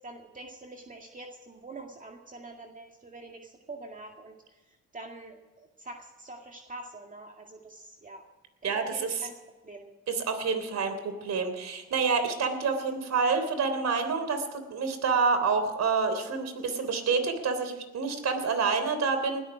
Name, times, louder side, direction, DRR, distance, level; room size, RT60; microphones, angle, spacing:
voice 1, 0.0-8.2 8.7-9.3 9.6-9.9, right 2 dB, 25° right, 2 dB, 2.1 m, -45 dB
voice 2, 8.6-9.2 10.1-19.4, right 5 dB, 60° right, 8 dB, 3.4 m, -28 dB
20.0 x 13.5 x 4.9 m, 1.2 s
cardioid pair, 90°, 30 cm